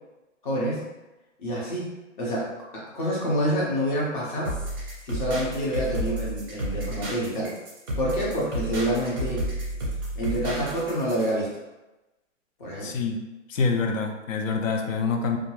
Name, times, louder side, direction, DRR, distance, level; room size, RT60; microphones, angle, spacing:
voice 1, 0.4-0.8 1.4-4.5 5.0-7.5 8.0-9.5 10.2-11.5 12.6-13.0, equal, 40° left, -5 dB, 0.8 m, -27 dB
sound 1, 4.4-11.3, right 1 dB, 20° right, 0.5 m, -31 dB
voice 2, 12.8-13.2 13.5-15.4, left 4 dB, 75° left, 4 dB, 0.6 m, -26 dB
2.4 x 2.1 x 3.0 m, 1.1 s
hypercardioid pair, 170°, 39 cm